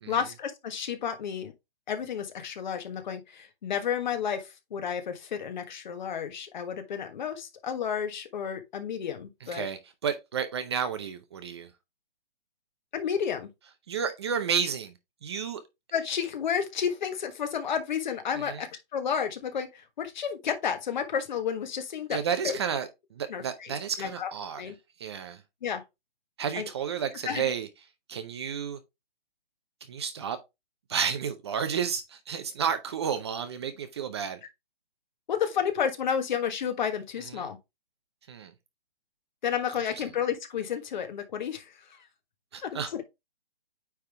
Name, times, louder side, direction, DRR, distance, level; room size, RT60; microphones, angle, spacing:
voice 1, 0.0-1.5 1.9-9.7 12.9-13.5 15.9-22.2 22.4-22.6 23.3-24.3 24.6-24.7 25.6-25.8 26.5-26.7 27.2-27.5 35.3-37.6 39.4-41.7 42.6-43.0, left 7 dB, 50° left, 1.4 m, -31 dB
voice 2, 9.5-11.7 13.9-14.9 15.2-15.6 18.5-18.6 22.1-24.6 25.0-25.4 26.4-27.7 28.1-28.8 29.9-30.4 30.9-34.4 37.3-37.5 38.3-38.5 42.5-43.0, right 7 dB, 25° right, 0.6 m, -31 dB
9.1 x 3.5 x 3.4 m
hypercardioid pair, 155°, 30 cm